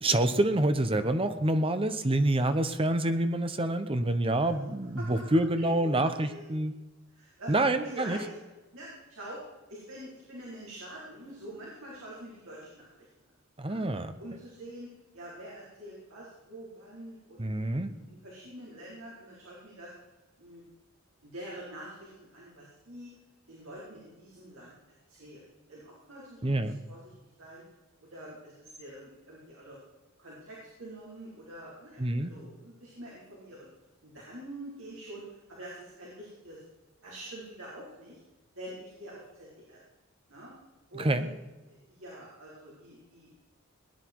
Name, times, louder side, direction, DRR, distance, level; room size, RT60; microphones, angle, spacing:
voice 1, 0.0-6.7 7.5-8.2 13.6-14.2 17.4-17.9 26.4-26.8 32.0-32.3 41.0-41.3, right 1 dB, 25° right, 10 dB, 0.9 m, -27 dB
voice 2, 5.6-6.6 7.1-7.5 7.8-8.3 8.7-9.4 9.7-13.1 13.7-13.8 14.2-19.9 20.4-20.6 21.2-23.1 23.5-24.7 25.1-27.1 27.4-27.6 28.1-29.8 30.2-33.7 34.0-36.6 37.0-38.2 38.5-39.8 40.3-40.5 40.9-41.3 41.7-43.3, right 1 dB, 70° right, -6 dB, 4.7 m, -46 dB
19.0 x 10.5 x 4.7 m, 1.1 s
head